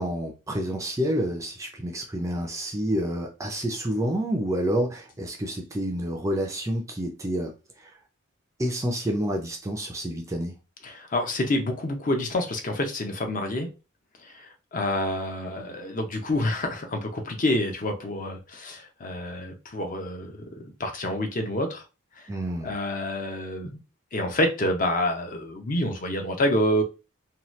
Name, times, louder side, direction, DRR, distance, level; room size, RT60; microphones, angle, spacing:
voice 1, 0.0-7.5 7.8-7.9 8.6-10.6 22.3-22.8, equal, 15° right, 0.4 m, -28 dB
voice 2, 10.8-13.7 14.2-21.8 22.6-23.7 24.1-26.8, left 1 dB, 40° left, 0.5 m, -28 dB
2.8 x 2.3 x 3.1 m
head